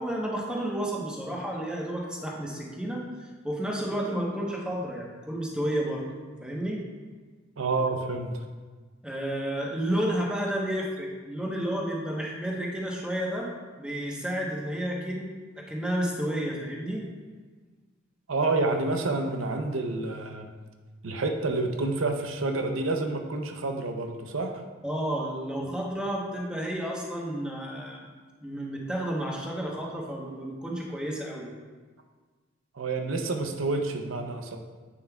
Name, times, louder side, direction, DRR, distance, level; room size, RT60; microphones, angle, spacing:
voice 1, 0.0-3.0 3.4-6.1 6.4-6.8 9.0-13.5 13.8-15.3 15.6-17.0 24.8-28.1 28.4-31.5, right 1 dB, 5° right, -2 dB, 1.0 m, -31 dB
voice 2, 7.6-8.3 18.3-20.5 21.0-24.5 32.8-34.6, right 3 dB, 85° right, 4 dB, 0.7 m, -28 dB
8.7 x 6.8 x 2.3 m, 1.4 s
head